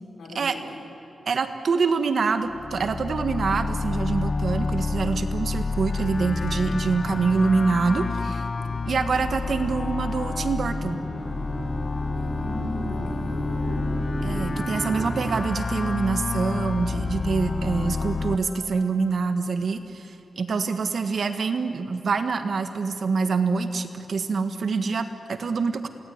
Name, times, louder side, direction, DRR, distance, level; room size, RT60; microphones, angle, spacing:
voice 1, 0.2-0.8 12.1-13.9, left 1 dB, 75° left, 2 dB, 4.3 m, -38 dB
voice 2, 1.2-8.4 8.8-11.0 14.2-25.9, right 4 dB, 60° right, 8 dB, 1.6 m, -25 dB
sound 1, 2.5-18.4, left 3 dB, 35° left, 0.6 m, -29 dB
sound 2, 8.5-15.4, right 4 dB, 40° right, 0.6 m, -36 dB
sound 3, 11.1-19.4, equal, 10° right, 6.1 m, -49 dB
28.0 x 18.5 x 9.6 m, 2.9 s
wide cardioid pair, 120°, 0 cm